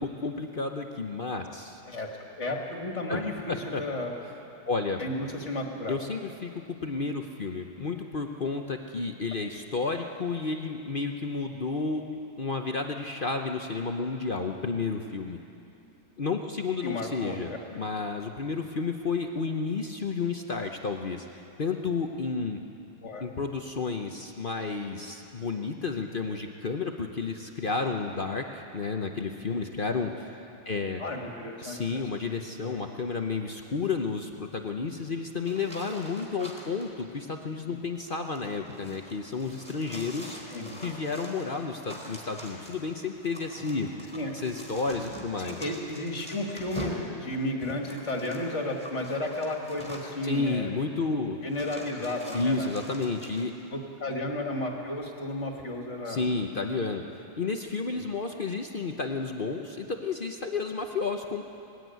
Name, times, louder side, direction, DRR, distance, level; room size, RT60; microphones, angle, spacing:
voice 1, 0.0-1.8 3.1-3.8 4.7-5.0 5.9-12.1 12.4-15.4 16.2-22.6 23.2-31.0 31.6-40.4 40.8-43.9 44.4-45.6 50.2-51.4 52.3-53.5 56.1-57.0 57.3-61.4, left 4 dB, 65° left, 4 dB, 0.5 m, -31 dB
voice 2, 2.4-4.1 5.0-6.0 16.8-17.8 23.0-23.3 29.5-29.6 31.0-32.0 32.5-32.8 37.7-37.8 40.5-40.8 44.1-44.3 45.4-50.7 51.4-52.8 53.7-56.2 57.9-58.1, left 1 dB, 35° left, 1 dB, 2.3 m, -33 dB
sound 1, 35.4-36.9 37.9-50.3 51.0-51.1 51.5-53.4, left 1 dB, 5° left, 3.6 m, -44 dB
20.0 x 15.5 x 9.3 m, 2.8 s
omnidirectional pair, 2.2 m